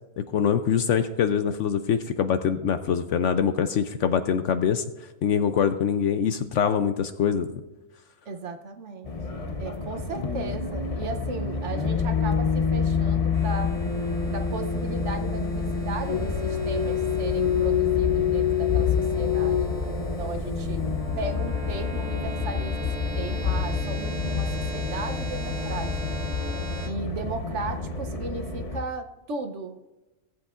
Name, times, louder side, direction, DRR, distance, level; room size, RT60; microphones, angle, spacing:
voice 1, 0.3-4.8 5.2-7.5, left 7 dB, 65° left, 9 dB, 0.8 m, -24 dB
voice 2, 8.3-9.1 9.6-13.7 14.3-20.8 21.2-22.9 23.1-26.2 26.8-29.9, right 3 dB, 60° right, 7 dB, 1.0 m, -36 dB
sound 1, 9.0-28.8, left 6 dB, 45° left, 0.4 m, -27 dB
sound 2, 13.3-26.9, right 3 dB, 85° right, 2.2 m, -40 dB
18.5 x 8.0 x 2.4 m, 1.1 s
omnidirectional pair, 1.6 m